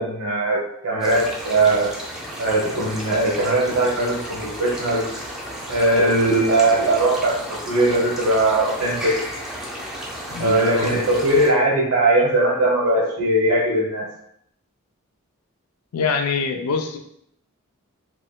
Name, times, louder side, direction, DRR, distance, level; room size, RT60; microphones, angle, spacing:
voice 1, 0.0-1.9 2.4-5.0 5.7-7.3 7.6-9.1 10.4-14.0, right 2 dB, 70° right, -2 dB, 1.0 m, -19 dB
sound 1, 1.0-11.5, equal, ahead, 0.3 m, -33 dB
voice 2, 10.3-10.9 15.9-17.0, left 5 dB, 85° left, 5 dB, 0.4 m, -24 dB
3.0 x 3.0 x 2.2 m, 0.71 s
head